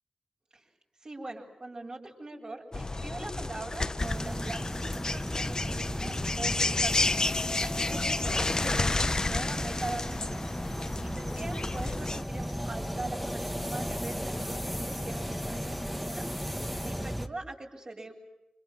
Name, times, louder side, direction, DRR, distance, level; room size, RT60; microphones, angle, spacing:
voice 1, 1.0-7.1 7.6-10.4 11.0-16.3 16.8-18.1, right 2 dB, 45° right, -2 dB, 8.0 m, -41 dB
sound 1, 2.7-12.2, left 2 dB, 35° left, 1.1 m, -31 dB
sound 2, 4.0-17.3, equal, ahead, 1.7 m, -35 dB
sound 3, 7.1-11.3 12.1-15.7, left 4 dB, 65° left, 1.7 m, -48 dB
30.0 x 26.5 x 7.4 m, 0.88 s
wide cardioid pair, 110°, 2 cm